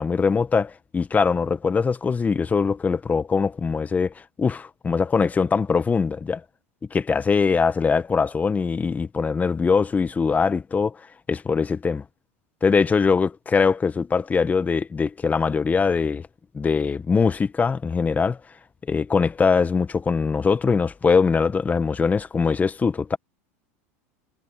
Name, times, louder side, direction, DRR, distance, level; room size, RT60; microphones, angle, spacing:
voice 1, 0.0-6.4 6.9-11.0 11.3-12.0 12.6-16.2 16.5-18.4 18.9-23.2, left 5 dB, 20° left, 1.3 m, -22 dB
hypercardioid pair, 105°, 8 cm